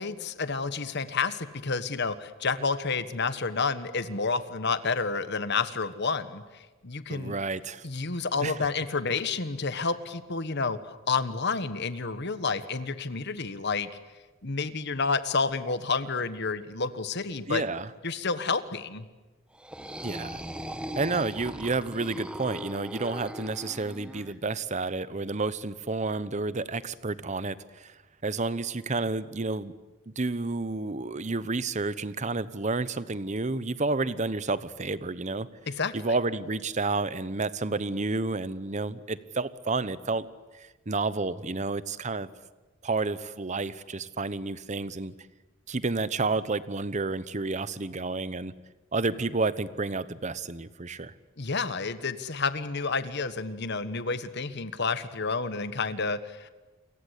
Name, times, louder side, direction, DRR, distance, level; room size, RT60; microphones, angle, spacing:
voice 1, 0.0-7.4 7.8-13.9 14.4-17.6 18.0-19.0 35.7-36.1 51.4-56.5, left 4 dB, 55° left, 12 dB, 1.4 m, -30 dB
voice 2, 7.1-7.8 8.4-8.6 17.5-17.9 20.0-20.4 21.0-27.9 28.2-29.7 30.1-35.5 35.9-40.3 40.5-42.3 42.8-45.1 45.7-48.5 48.9-51.1, right 3 dB, 35° right, 16 dB, 0.9 m, -30 dB
sound 1, 19.5-24.3, equal, 5° right, 1.3 m, -39 dB
29.0 x 23.0 x 8.3 m, 1.2 s
head